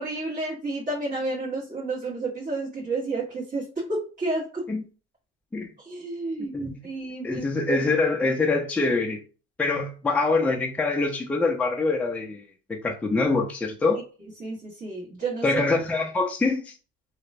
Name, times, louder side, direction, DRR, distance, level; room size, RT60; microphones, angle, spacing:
voice 1, 0.0-4.7 5.8-7.5 14.4-15.6, right 2 dB, 25° right, 1.4 m, -31 dB
voice 2, 6.4-6.8 7.2-9.2 9.6-12.4 12.7-14.0 15.4-16.7, left 3 dB, 5° left, 0.4 m, -24 dB
2.9 x 2.2 x 2.5 m
supercardioid pair, 85°, 33 cm